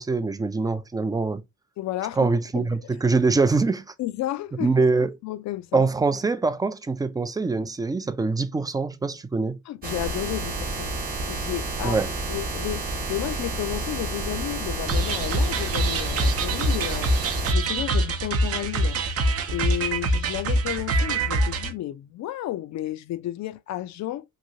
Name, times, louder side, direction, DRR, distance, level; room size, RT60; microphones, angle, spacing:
voice 1, 0.0-1.4 2.2-3.9 4.6-5.1 5.7-9.6 11.8-12.1, right 3 dB, 15° right, 0.3 m, -24 dB
voice 2, 1.8-2.7 4.0-4.7 5.2-5.9 9.7-10.9 11.3-12.0 12.3-17.1 17.5-19.0 19.5-24.2, left 14 dB, 65° left, 0.4 m, -32 dB
sound 1, 9.8-17.5, right 2 dB, 30° right, 0.9 m, -30 dB
sound 2, 14.9-21.7, right 2 dB, 50° right, 0.6 m, -24 dB
3.1 x 2.7 x 2.6 m
cardioid pair, 90°, 30 cm